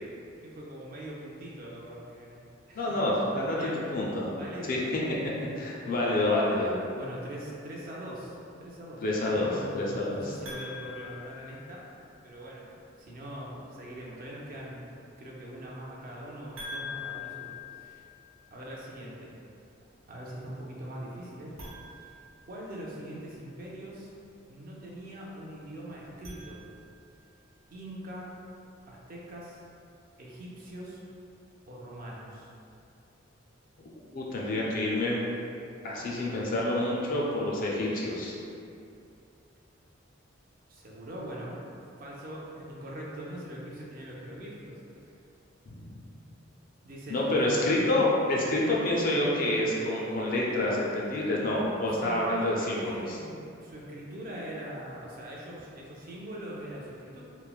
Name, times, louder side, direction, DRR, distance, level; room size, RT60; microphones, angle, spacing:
voice 1, 0.4-2.4 2.7-3.2 3.6-3.8 4.3-5.0 6.9-11.9 12.2-14.8 15.2-18.0 18.5-19.3 20.1-21.7 22.0-22.2 22.5-24.1 24.5-26.6 27.7-28.3 28.9-29.6 30.2-31.0 31.7-32.5 40.7-41.6 42.0-44.8 46.8-47.8 49.1-49.4 52.0-57.2, right 1 dB, 45° right, -4 dB, 0.4 m, -42 dB
voice 2, 2.7-3.6 3.9-4.3 4.7-4.8 5.6-6.8 9.0-10.3 34.1-35.2 35.8-38.3 45.7-45.8 47.1-53.2, left 1 dB, 45° left, -4 dB, 0.4 m, -28 dB
sound 1, 10.4-12.1 16.6-18.6 21.5-23.1 26.0-27.2, left 4 dB, 80° right, 1.0 m, -44 dB
3.1 x 2.0 x 2.3 m, 2.6 s
head